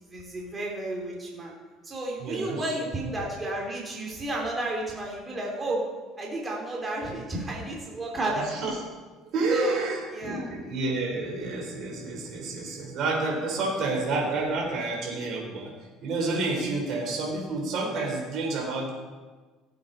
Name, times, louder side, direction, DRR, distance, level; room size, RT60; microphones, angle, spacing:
voice 1, 0.1-1.5 1.8-5.8 6.2-8.5 9.5-10.5, right 1 dB, 20° right, -2 dB, 3.0 m, -32 dB
voice 2, 2.2-2.6 8.5-8.7 9.3-15.7 16.0-18.9, right 3 dB, 55° right, 0 dB, 4.1 m, -29 dB
16.5 x 8.6 x 4.2 m, 1.3 s
cardioid pair, 125°, 0 cm